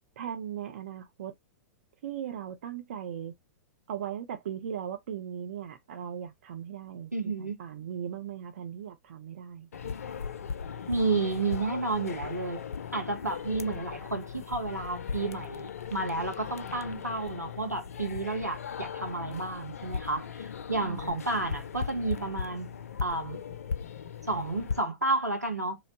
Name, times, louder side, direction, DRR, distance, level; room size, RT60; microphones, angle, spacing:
voice 1, 0.2-1.3 2.0-3.3 3.9-9.7 20.8-21.2, right 9 dB, 55° right, 0.5 m, -38 dB
voice 2, 7.1-7.5 10.9-12.6 12.9-22.7 23.0-23.4 24.3-25.8, right 3 dB, 90° right, 0.8 m, -31 dB
sound 1, 9.7-24.8, left 6 dB, 65° left, 0.4 m, -38 dB
2.8 x 2.0 x 2.8 m
figure-of-eight pair, 100°, 9 cm